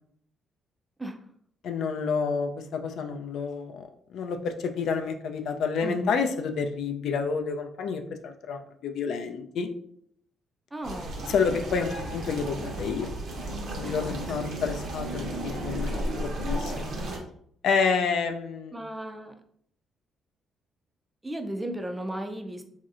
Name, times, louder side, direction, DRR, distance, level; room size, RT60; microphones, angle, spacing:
voice 1, 1.6-9.7 11.3-13.1 13.8-16.9 17.6-18.8, left 5 dB, 75° left, 5 dB, 0.4 m, -29 dB
voice 2, 5.8-6.2 10.7-11.2 13.8-14.2 18.7-19.3 21.2-22.6, right 1 dB, 10° right, 5 dB, 0.4 m, -35 dB
sound 1, 10.8-17.2, right 1 dB, 65° right, 0.8 m, -33 dB
3.0 x 2.7 x 2.5 m, 0.66 s
cardioid pair, 90°, 0 cm